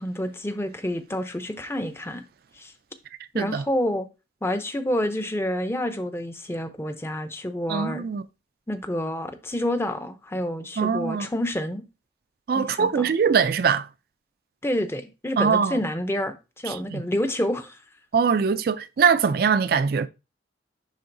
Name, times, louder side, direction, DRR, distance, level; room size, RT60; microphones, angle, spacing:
voice 1, 0.0-2.2 2.6-2.7 3.3-4.1 4.4-8.0 8.7-11.8 12.5-13.1 14.6-17.8, left 1 dB, 15° left, 0.6 m, -28 dB
voice 2, 3.3-3.6 7.7-8.2 10.8-11.3 12.5-13.9 15.4-15.8 16.7-17.0 18.1-20.1, right 6 dB, 55° right, 0.3 m, -22 dB
10.5 x 3.7 x 2.6 m
head